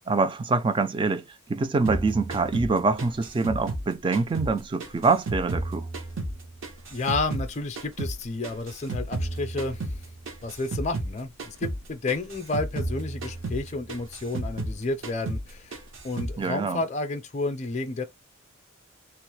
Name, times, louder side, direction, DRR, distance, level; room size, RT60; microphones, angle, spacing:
voice 1, 0.1-1.2 1.5-5.9 16.4-16.8, right 3 dB, 25° right, 0.3 m, -25 dB
sound 1, 1.8-4.5 4.8-7.5 7.8-11.1 11.4-11.8 12.1-14.8 15.0-15.5 15.7-16.4, right 2 dB, 65° right, 0.9 m, -33 dB
voice 2, 6.9-9.9 10.4-15.8 16.0-18.0, left 3 dB, 35° left, 0.5 m, -31 dB
3.0 x 2.0 x 3.1 m
head